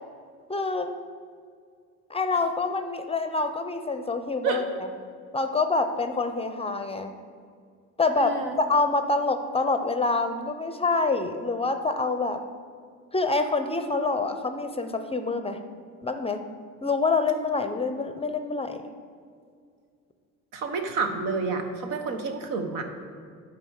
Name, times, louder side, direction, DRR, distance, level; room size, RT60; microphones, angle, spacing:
voice 1, 0.5-0.9 2.1-4.6 5.3-7.1 8.0-12.4 13.1-15.6 16.0-16.4 16.8-18.8, left 3 dB, 15° left, 8 dB, 0.5 m, -26 dB
voice 2, 8.1-8.6 20.5-22.8, right 4 dB, 75° right, 5 dB, 1.1 m, -29 dB
8.8 x 5.0 x 6.3 m, 2.2 s
supercardioid pair, 85°, 34 cm